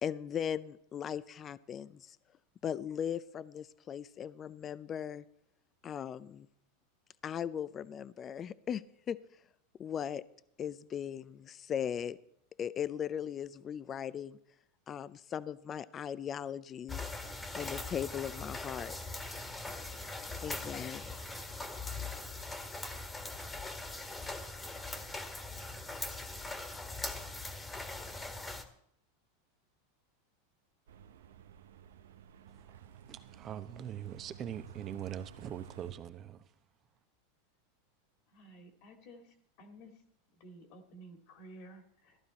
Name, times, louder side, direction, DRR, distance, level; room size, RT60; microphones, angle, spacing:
voice 1, 0.0-2.2 2.6-5.2 5.8-6.5 7.2-9.2 9.8-10.2 10.6-12.2 12.6-14.4 14.9-17.0 17.5-19.0 20.4-21.2, left 8 dB, 30° left, 0.5 m, -38 dB
sound 1, 16.9-28.6, left 2 dB, 15° left, 1.6 m, -41 dB
sound 2, 30.9-35.9, right 9 dB, 80° right, 0.7 m, -53 dB
voice 2, 32.5-36.5, right 10 dB, 35° right, 0.9 m, -43 dB
voice 3, 38.3-39.2 39.6-39.9 40.4-42.2, right 1 dB, 60° left, 2.3 m, -53 dB
15.0 x 11.5 x 4.2 m
hypercardioid pair, 100°, 0 cm